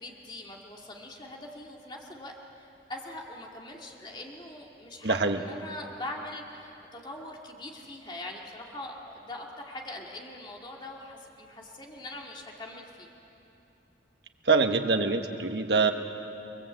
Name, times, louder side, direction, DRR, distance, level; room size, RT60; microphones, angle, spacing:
voice 1, 0.0-13.1, left 1 dB, 25° left, -1 dB, 2.4 m, -42 dB
voice 2, 5.0-5.4 14.4-15.9, right 4 dB, 70° right, 5 dB, 1.5 m, -24 dB
29.5 x 21.0 x 8.1 m, 2.9 s
head